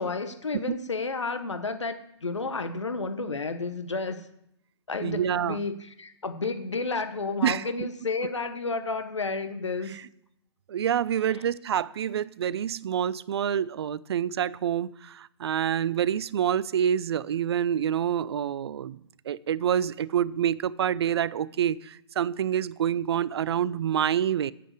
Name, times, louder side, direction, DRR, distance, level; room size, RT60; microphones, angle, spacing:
voice 1, 0.0-4.2 4.9-9.9, left 3 dB, 85° left, 10 dB, 1.1 m, -31 dB
voice 2, 5.0-5.6 7.4-7.9 9.9-10.0 10.7-19.0 19.3-24.5, right 9 dB, 60° right, 20 dB, 0.5 m, -27 dB
9.2 x 7.6 x 8.0 m, 0.76 s
figure-of-eight pair, 115°, 15 cm